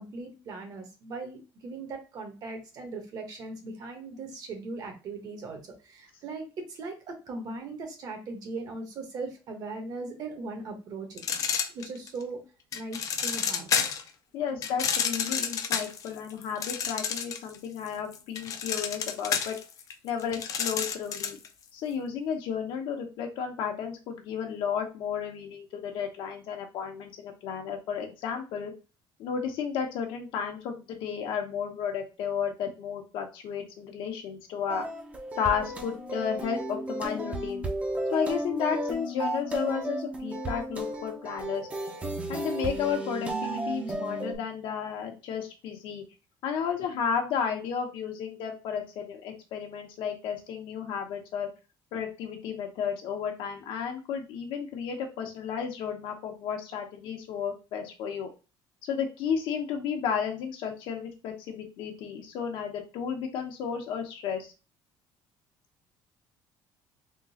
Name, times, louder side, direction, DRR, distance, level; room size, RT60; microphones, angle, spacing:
voice 1, 0.0-11.2 11.7-12.4 12.7-13.8, right 3 dB, 45° right, 3 dB, 1.1 m, -39 dB
sound 1, 11.2-12.2 12.7-14.1 14.6-17.6 17.9-21.5, left 7 dB, 40° left, 0.5 m, -30 dB
voice 2, 14.3-19.6 20.0-21.4 21.7-28.7 29.2-34.9 35.4-37.6 38.1-41.7 42.3-46.0 46.4-51.5 51.9-58.3 58.8-64.5, left 7 dB, 65° left, 3 dB, 1.0 m, -33 dB
sound 2, 34.7-44.3, right 1 dB, 15° right, 0.7 m, -33 dB
3.7 x 3.0 x 2.8 m, 0.31 s
cardioid pair, 165°, 9 cm